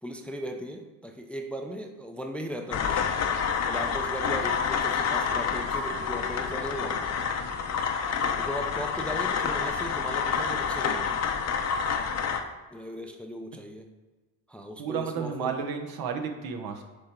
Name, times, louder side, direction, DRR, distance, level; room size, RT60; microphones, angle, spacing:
voice 1, 0.0-3.1 3.7-7.2 8.3-11.3 12.7-13.9 14.5-15.6, equal, 5° left, 3 dB, 0.5 m, -37 dB
sound 1, 2.7-12.4, left 6 dB, 40° left, 0.7 m, -28 dB
voice 2, 14.8-16.8, right 7 dB, 65° right, 4 dB, 1.0 m, -32 dB
6.5 x 3.5 x 4.4 m, 1.3 s
supercardioid pair, 90°, 39 cm